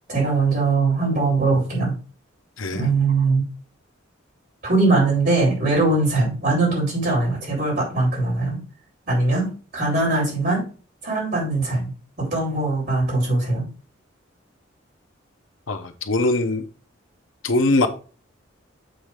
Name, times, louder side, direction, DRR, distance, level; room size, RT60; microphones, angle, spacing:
voice 1, 0.1-1.9 2.7-3.4 4.6-8.6 9.1-10.7 11.0-11.9 12.2-13.7, right 3 dB, 50° right, 3.5 m, -21 dB
voice 2, 15.7-16.6 17.4-17.9, left 2 dB, 80° left, 0.9 m, -21 dB
7.8 x 3.2 x 4.9 m
head